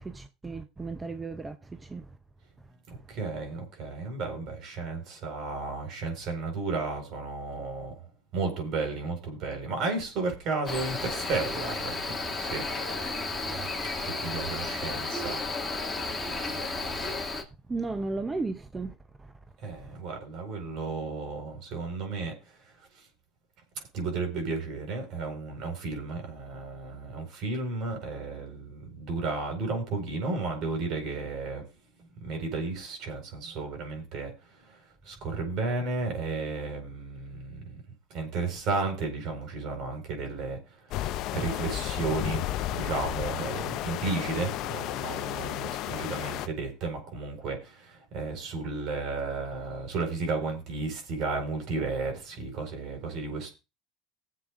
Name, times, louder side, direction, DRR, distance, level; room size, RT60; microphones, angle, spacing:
voice 1, 0.0-2.1 17.7-19.3 19.7-20.0, right 3 dB, 15° right, 0.6 m, -35 dB
voice 2, 2.9-8.0 8.3-12.6 13.4-13.6 14.0-15.4 19.6-22.3 23.8-31.6 32.2-34.3 34.7-37.8 38.1-40.6 40.9-42.4 42.7-53.5, right 3 dB, 55° right, 4.5 m, -33 dB
Cricket, 10.7-17.4, left 3 dB, 10° left, 2.1 m, -33 dB
sound 1, 40.9-46.5, left 13 dB, 60° left, 0.6 m, -33 dB
20.5 x 7.6 x 2.5 m
supercardioid pair, 120°, 0 cm